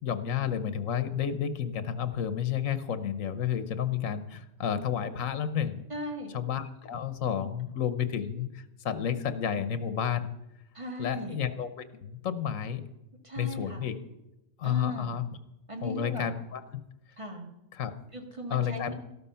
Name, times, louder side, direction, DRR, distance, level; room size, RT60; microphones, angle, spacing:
voice 1, 0.0-5.8 6.3-10.3 11.0-12.8 13.4-14.0 14.6-15.2 15.8-16.8 17.7-17.9 18.5-18.9, left 9 dB, 85° left, 12 dB, 1.3 m, -31 dB
voice 2, 5.9-6.3 10.7-11.4 13.2-13.8 14.6-15.1 15.7-16.3 17.2-17.5 18.1-19.0, equal, 25° right, 3 dB, 2.1 m, -37 dB
13.0 x 12.5 x 5.6 m, 0.93 s
omnidirectional pair, 1.3 m